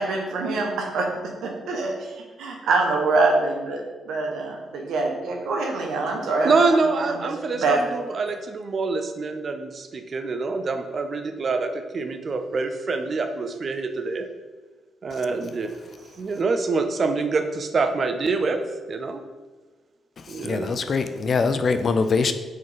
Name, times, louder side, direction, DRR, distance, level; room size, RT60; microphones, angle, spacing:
voice 1, 0.0-6.8 7.1-7.2 7.5-7.8, right 3 dB, 80° right, 1 dB, 0.8 m, -25 dB
voice 2, 6.4-14.3 15.0-15.7 16.2-18.6 18.9-19.2 20.3-20.7, right 3 dB, 45° right, 7 dB, 0.4 m, -25 dB
voice 3, 20.2-22.3, left 4 dB, 50° left, 9 dB, 0.3 m, -23 dB
4.2 x 3.1 x 3.8 m, 1.3 s
cardioid pair, 95°, 0 cm